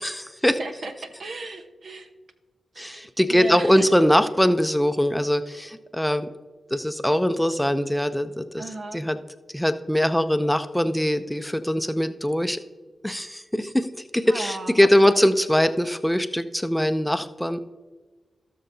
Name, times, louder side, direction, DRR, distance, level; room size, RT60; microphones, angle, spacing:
voice 1, 0.0-0.6 2.8-6.3 6.7-8.6 8.9-9.2 9.5-12.6 13.0-17.7, equal, 5° left, 10 dB, 0.5 m, -22 dB
voice 2, 0.6-2.1 2.7-3.9 8.6-9.0 14.3-15.3, right 3 dB, 70° right, 5 dB, 1.0 m, -35 dB
17.5 x 6.6 x 2.7 m, 1.3 s
cardioid pair, 55°, 0 cm